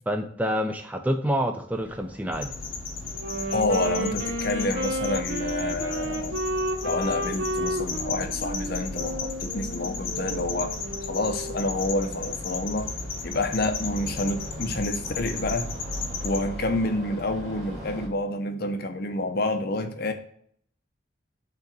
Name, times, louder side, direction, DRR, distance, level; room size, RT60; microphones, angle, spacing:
voice 1, 0.1-2.5, equal, 5° right, 6 dB, 0.4 m, -27 dB
sound 1, 1.7-18.1, equal, 30° right, 2.3 m, -41 dB
sound 2, 2.3-16.4, left 5 dB, 75° left, 1.0 m, -35 dB
Wind instrument woodwind instrument, 3.1-11.8, right 1 dB, 65° right, 0.9 m, -32 dB
voice 2, 3.5-6.4 6.8-10.7 11.1-12.9 13.2-15.7 16.2-20.1, left 2 dB, 50° left, 7 dB, 0.7 m, -28 dB
5.5 x 3.9 x 5.2 m, 0.65 s
head